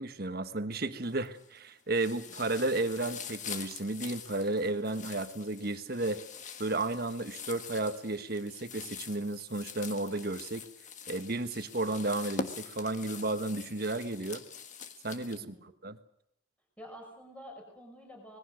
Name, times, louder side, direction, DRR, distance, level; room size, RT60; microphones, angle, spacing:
voice 1, 0.0-6.2 6.6-10.7 11.1-14.4 15.0-16.0, right 2 dB, 50° right, 9 dB, 1.5 m, -33 dB
sound 1, 1.0-1.6 1.9-15.4, left 5 dB, 40° left, 1.5 m, -44 dB
voice 2, 15.3-15.7 16.8-18.4, equal, 5° left, 2 dB, 5.6 m, -49 dB
25.5 x 20.5 x 6.5 m, 0.73 s
head